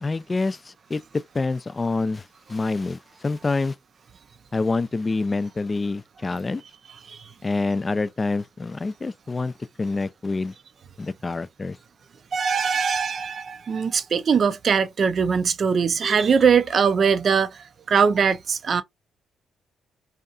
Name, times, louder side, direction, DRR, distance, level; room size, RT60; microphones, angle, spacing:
voice 1, 0.0-3.7 4.5-6.6 7.4-9.5 9.8-10.5 11.0-11.8, left 3 dB, 30° left, 0.3 m, -27 dB
voice 2, 12.3-18.8, right 6 dB, 55° right, 0.4 m, -21 dB
2.7 x 2.3 x 2.3 m
supercardioid pair, 55°, 0 cm